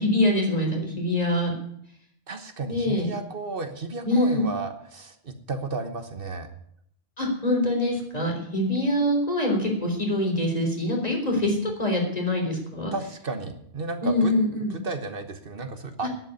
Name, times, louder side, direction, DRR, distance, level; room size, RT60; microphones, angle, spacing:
voice 1, 0.0-1.5 2.7-3.1 4.0-4.5 7.2-12.9 14.0-14.8, left 1 dB, 40° left, 1 dB, 3.7 m, -24 dB
voice 2, 2.3-6.5 12.9-14.3 14.7-16.1, right 3 dB, 65° right, 7 dB, 1.4 m, -33 dB
11.0 x 8.4 x 9.4 m, 0.70 s
omnidirectional pair, 1.0 m